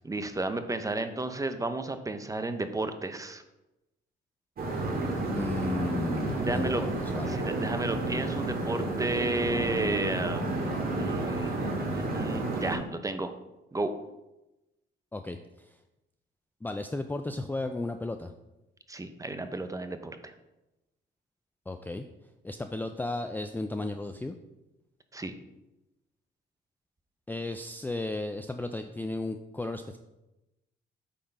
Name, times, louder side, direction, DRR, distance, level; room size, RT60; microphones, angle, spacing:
voice 1, 0.0-3.4 6.5-6.8 7.2-10.6 10.9-13.3 13.7-13.9 18.9-20.3 25.1-25.3, right 2 dB, 15° right, 9 dB, 0.7 m, -32 dB
sound 1, 4.6-12.8, right 2 dB, 50° right, 2.1 m, -31 dB
voice 2, 5.2-7.4 15.1-15.4 16.6-18.3 21.7-22.1 22.4-24.4 27.3-30.0, left 2 dB, 10° left, 6 dB, 0.4 m, -34 dB
8.6 x 3.8 x 5.4 m, 0.96 s
cardioid pair, 90°, 20 cm